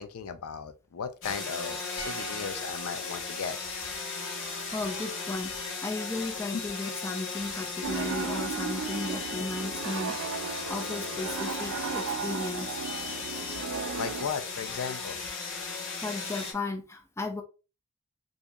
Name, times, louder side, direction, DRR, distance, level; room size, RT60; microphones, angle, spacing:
voice 1, 0.0-3.6 14.0-15.2, left 6 dB, 80° left, 0.4 m, -36 dB
sound 1, 1.2-16.5, left 4 dB, 60° left, 1.0 m, -36 dB
sound 2, 2.0-5.2 5.4-5.6, right 4 dB, 40° left, 1.3 m, -47 dB
voice 2, 4.7-12.8 16.0-17.4, left 3 dB, 10° left, 0.5 m, -35 dB
Piano, 7.8-14.3, right 6 dB, 65° right, 0.3 m, -35 dB
2.9 x 2.6 x 3.5 m
head